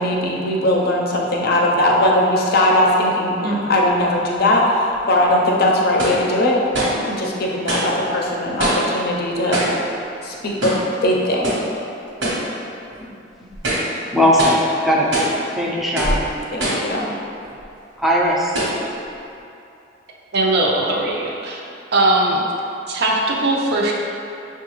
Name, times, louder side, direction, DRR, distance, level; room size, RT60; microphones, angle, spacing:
voice 1, 0.0-6.6 7.1-9.6 10.2-10.7 11.0-11.6 16.5-17.1, left 1 dB, 55° left, -2 dB, 0.5 m, -19 dB
sound 1, 5.0-5.1 6.0-6.3 6.7-7.0 7.7-7.9 8.6-9.0 9.5-9.8 10.6-10.9 11.4-11.7 12.2-12.5 12.9-13.0 13.5-13.9 14.4-14.7 15.1-15.4 16.0-16.2 16.6-16.9 17.6-17.7 18.5-18.8, right 1 dB, 80° right, 1.1 m, -22 dB
voice 2, 14.1-15.1 15.5-16.2 18.0-18.7, equal, ahead, -4 dB, 0.4 m, -18 dB
voice 3, 20.3-21.6 21.9-22.4 22.9-23.9, right 2 dB, 60° right, -2 dB, 0.5 m, -19 dB
5.6 x 2.3 x 3.0 m, 2.7 s
head